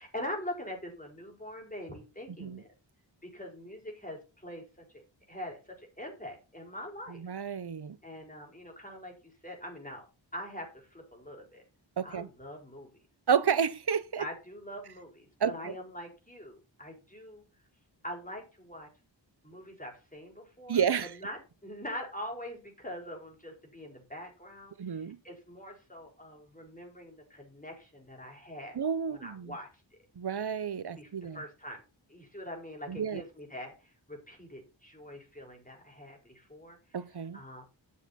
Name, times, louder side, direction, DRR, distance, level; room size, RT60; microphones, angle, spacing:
voice 1, 0.0-2.7 3.3-4.6 5.3-7.2 8.0-9.1 9.4-10.1 10.3-11.6 12.0-12.9 14.2-17.4 18.0-18.9 19.4-20.8 21.1-28.8 29.1-29.7 31.0-31.8 32.1-36.8 37.3-37.6, equal, 20° left, 4.6 m, -43 dB
voice 2, 7.1-8.0 12.0-12.3 13.3-14.3 15.4-15.7 20.7-21.1 24.8-25.2 28.7-29.5 30.2-31.4 32.9-33.2 36.9-37.4, right 7 dB, 60° right, 0.7 m, -30 dB
10.5 x 6.9 x 4.2 m
wide cardioid pair, 55°, 45 cm